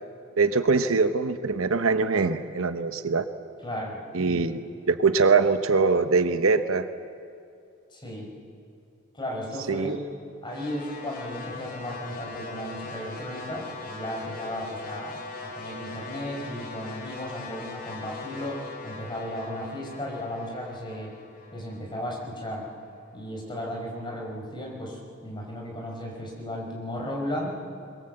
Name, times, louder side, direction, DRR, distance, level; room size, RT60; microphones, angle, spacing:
voice 1, 0.4-3.3 4.1-4.6 4.9-6.9 9.7-10.0, right 4 dB, 70° right, 10 dB, 0.9 m, -23 dB
voice 2, 3.6-4.4 7.9-8.3 9.1-10.0 10.4-15.2 15.4-18.6 18.8-21.1 21.5-22.7 23.1-27.6, left 1 dB, 20° left, -2 dB, 5.4 m, -35 dB
sound 1, 10.5-22.7, left 3 dB, 45° left, 3.5 m, -41 dB
22.0 x 21.5 x 7.9 m, 2.5 s
head